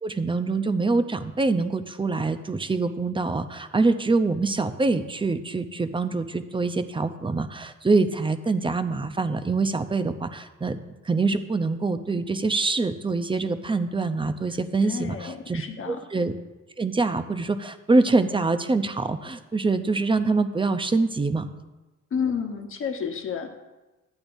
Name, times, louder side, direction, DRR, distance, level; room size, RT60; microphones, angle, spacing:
voice 1, 0.0-10.8 11.1-16.3 16.8-21.5, right 3 dB, 15° right, 10 dB, 0.6 m, -25 dB
voice 2, 14.8-16.0 22.1-23.6, left 6 dB, 45° left, 5 dB, 1.2 m, -30 dB
12.5 x 8.5 x 2.7 m, 1.1 s
cardioid pair, 90°, 30 cm